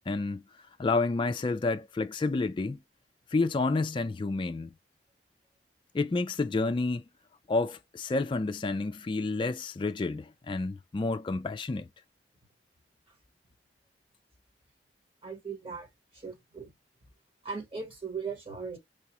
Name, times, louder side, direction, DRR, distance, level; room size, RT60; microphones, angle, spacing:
voice 1, 0.1-0.4 0.8-2.8 3.3-4.7 5.9-7.0 7.5-11.9, left 3 dB, 30° left, 0.3 m, -29 dB
voice 2, 15.2-15.9 16.1-16.7 17.4-18.8, right 5 dB, 30° right, 1.1 m, -38 dB
4.8 x 2.3 x 2.8 m
head